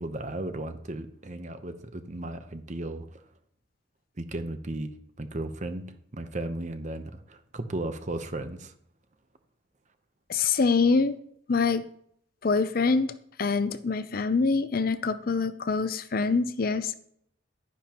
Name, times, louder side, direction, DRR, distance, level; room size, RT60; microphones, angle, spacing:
voice 1, 0.0-3.2 4.2-8.7, right 1 dB, 35° right, 9 dB, 0.8 m, -35 dB
voice 2, 10.3-11.1 11.5-11.9 12.4-16.9, left 4 dB, 45° left, 13 dB, 0.5 m, -25 dB
11.0 x 10.5 x 3.0 m, 0.68 s
head